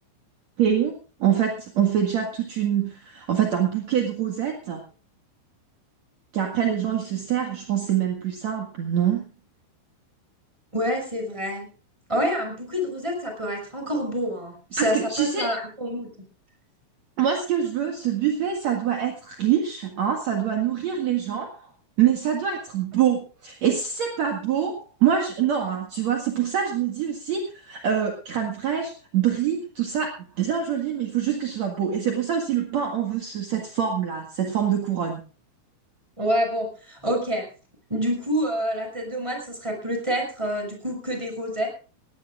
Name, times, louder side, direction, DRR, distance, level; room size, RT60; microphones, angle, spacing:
voice 1, 0.6-4.8 6.3-9.3 14.8-15.5 17.2-21.7 22.0-35.2, right 9 dB, 55° right, 2 dB, 2.1 m, -25 dB
voice 2, 10.7-11.7 12.1-16.1 36.2-37.4 37.9-41.7, equal, 5° right, 2 dB, 5.7 m, -27 dB
20.0 x 17.5 x 2.5 m, 0.35 s
omnidirectional pair, 5.7 m